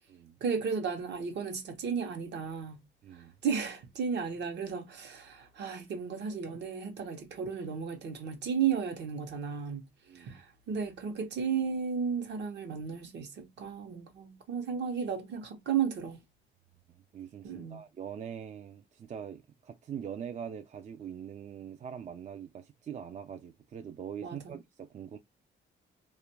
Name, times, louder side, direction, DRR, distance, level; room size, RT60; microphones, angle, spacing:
voice 1, 0.4-2.8 3.4-9.8 10.1-16.2 17.4-17.8 24.2-24.6, right 6 dB, 60° right, 0.9 m, -34 dB
voice 2, 3.0-3.3 10.1-10.4 17.1-25.2, right 8 dB, 35° right, 0.4 m, -43 dB
2.4 x 2.2 x 3.0 m
cardioid pair, 90°, 20 cm